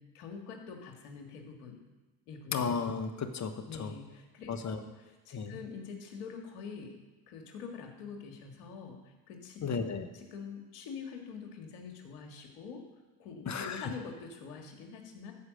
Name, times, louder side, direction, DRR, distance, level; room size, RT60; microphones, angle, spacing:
voice 1, 0.0-1.8 2.3-2.5 3.7-7.0 7.3-9.9 10.1-12.8 13.2-15.3, left 5 dB, 80° left, 3 dB, 2.0 m, -45 dB
voice 2, 2.5-3.9 4.5-4.8 5.3-5.6 9.6-10.1 13.5-13.8, left 5 dB, 35° left, 8 dB, 1.2 m, -34 dB
13.5 x 4.8 x 6.5 m, 1.2 s
hypercardioid pair, 75°, 49 cm